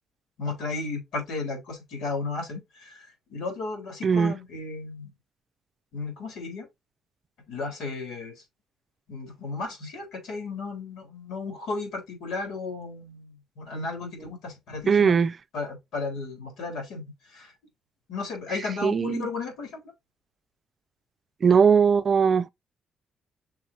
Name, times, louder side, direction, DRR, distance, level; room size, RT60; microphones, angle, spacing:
voice 1, 0.4-5.1 5.9-6.7 7.5-8.4 9.1-15.2 15.5-17.0 17.3-17.5 18.1-19.8, left 3 dB, 85° left, 3.9 m, -34 dB
voice 2, 4.0-4.3 14.9-15.3 18.8-19.3 21.4-22.5, right 6 dB, 45° right, 0.5 m, -20 dB
6.2 x 4.2 x 4.3 m
cardioid pair, 90°, 0 cm